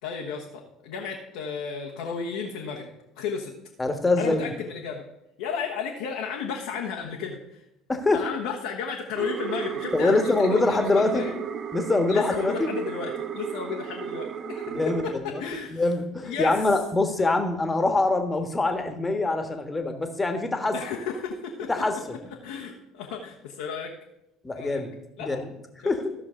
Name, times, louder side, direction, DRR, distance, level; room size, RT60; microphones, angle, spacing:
voice 1, 0.0-2.9 3.1-3.5 4.2-5.1 5.4-7.6 8.1-11.3 12.1-15.8 16.2-16.6 20.7-21.7 22.2-23.9 24.5-24.8 25.2-25.4, left 6 dB, 70° left, -2 dB, 1.2 m, -33 dB
voice 2, 3.8-4.5 7.9-8.2 9.9-11.2 11.7-12.7 14.7-15.4 15.7-20.7 21.7-21.9 24.4-24.9 25.2-25.5 25.8-26.0, left 2 dB, 20° left, 6 dB, 1.5 m, -24 dB
sound 1, 9.1-15.1, right 7 dB, 45° right, 0.6 m, -34 dB
14.5 x 6.2 x 3.8 m, 0.87 s
figure-of-eight pair, 60°, 0 cm